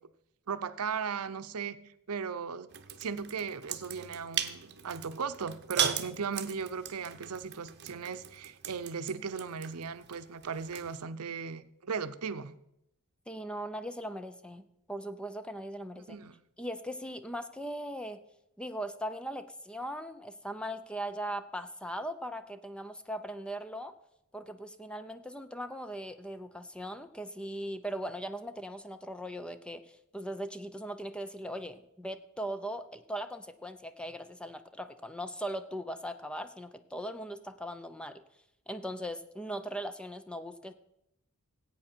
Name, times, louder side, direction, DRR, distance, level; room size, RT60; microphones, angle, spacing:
voice 1, 0.5-2.7 3.0-12.6 16.0-16.4, right 6 dB, 85° right, 12 dB, 0.7 m, -37 dB
sound 1, 2.7-11.0, right 8 dB, 50° right, 0.8 m, -38 dB
voice 2, 13.3-16.2 16.6-18.2 18.6-23.9 24.3-38.2 38.7-40.7, equal, 5° left, 10 dB, 0.5 m, -39 dB
16.0 x 8.5 x 4.4 m, 0.81 s
head